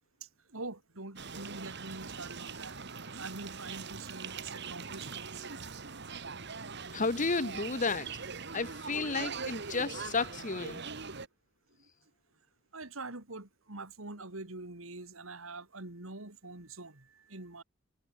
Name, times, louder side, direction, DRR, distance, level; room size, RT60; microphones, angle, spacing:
voice 1, 0.2-2.7 3.1-5.6 12.7-17.6, right 2 dB, 85° right, 3.3 m, -45 dB
sound 1, 1.2-11.3, right 5 dB, 55° right, 2.7 m, -42 dB
voice 2, 6.9-8.2 8.5-10.8, left 4 dB, 40° left, 1.4 m, -32 dB
head